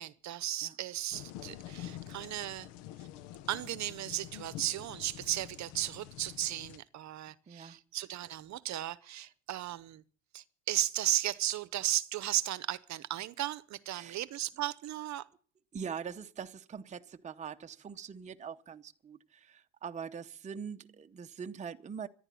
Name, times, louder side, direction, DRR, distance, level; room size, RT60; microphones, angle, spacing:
voice 1, 0.0-2.7 3.0-3.1 3.5-10.0 10.3-15.3, right 13 dB, 45° right, 0.9 m, -35 dB
sound 1, 1.1-6.8, left 13 dB, 90° left, 1.0 m, -47 dB
voice 2, 7.5-7.8 13.9-14.2 15.7-22.1, right 7 dB, 20° right, 0.7 m, -43 dB
14.5 x 11.0 x 8.4 m
cardioid pair, 140°, 38 cm